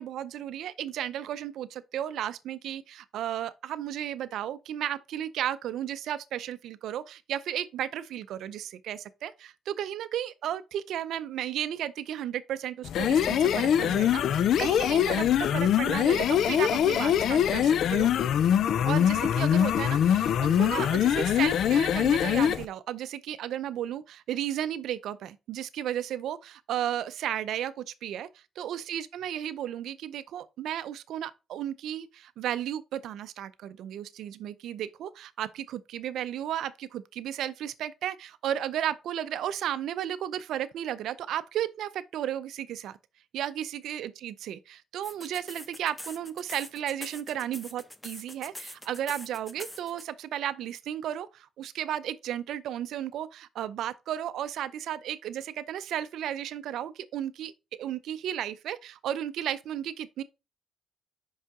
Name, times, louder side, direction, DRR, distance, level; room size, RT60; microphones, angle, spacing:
voice 1, 0.0-18.1 18.8-43.0 43.3-57.5 57.8-60.2, right 11 dB, 80° right, 0.5 m, -34 dB
sound 1, 12.8-22.6, left 9 dB, 70° left, 0.4 m, -23 dB
sound 2, 45.0-50.0, left 1 dB, 10° left, 0.8 m, -43 dB
5.6 x 5.6 x 3.6 m
cardioid pair, 90°, 0 cm